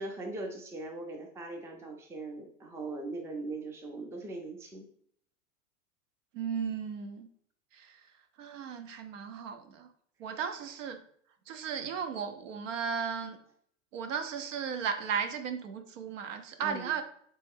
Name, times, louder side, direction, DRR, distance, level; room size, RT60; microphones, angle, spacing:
voice 1, 0.0-4.8 10.3-10.4 16.6-16.9, right 2 dB, 5° right, 3 dB, 0.4 m, -40 dB
voice 2, 6.3-7.3 7.7-8.0 8.4-9.9 10.2-11.0 11.5-13.4 13.9-17.0, right 7 dB, 75° right, 8 dB, 0.7 m, -35 dB
3.2 x 3.0 x 3.5 m, 0.64 s
hypercardioid pair, 110°, 38 cm